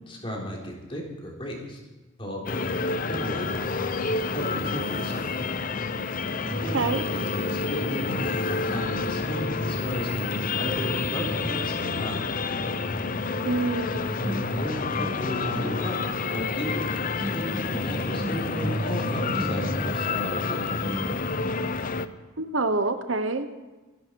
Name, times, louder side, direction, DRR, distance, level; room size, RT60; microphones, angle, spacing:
voice 1, 0.0-1.8 2.2-3.9 4.3-5.5 6.6-12.4 14.2-21.1, equal, 25° left, -2 dB, 3.7 m, -34 dB
sound 1, 2.5-22.1, left 4 dB, 40° left, 0.7 m, -29 dB
sound 2, 6.2-21.7, equal, 10° right, 3.6 m, -36 dB
voice 2, 13.4-14.1 22.4-23.5, right 3 dB, 65° right, 9 dB, 1.0 m, -26 dB
25.5 x 11.0 x 4.7 m, 1.2 s
head